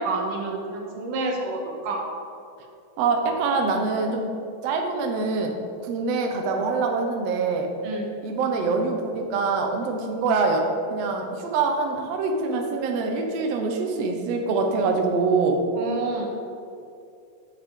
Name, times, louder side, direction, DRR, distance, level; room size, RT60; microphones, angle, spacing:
voice 1, 0.0-2.0 7.8-8.1 15.8-16.3, right 2 dB, 70° right, 0 dB, 2.5 m, -29 dB
voice 2, 3.0-4.2 4.6-5.5 5.8-7.7 8.2-10.6 10.9-15.6, right 4 dB, 90° right, 2 dB, 1.4 m, -24 dB
9.8 x 6.9 x 3.7 m, 2.6 s
omnidirectional pair, 4.2 m